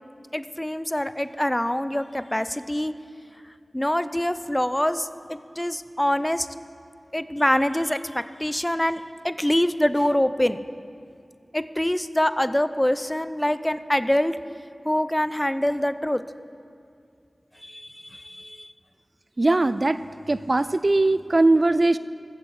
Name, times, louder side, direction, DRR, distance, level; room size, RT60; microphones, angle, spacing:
voice 1, 0.3-2.9 3.7-6.5 7.1-10.6 11.5-14.4 14.8-16.2 17.6-18.7, left 1 dB, 15° left, 13 dB, 0.5 m, -25 dB
voice 2, 19.4-20.0 20.3-22.0, right 2 dB, 45° right, 14 dB, 0.4 m, -20 dB
15.0 x 14.5 x 4.9 m, 2.4 s
wide cardioid pair, 50°, 0 cm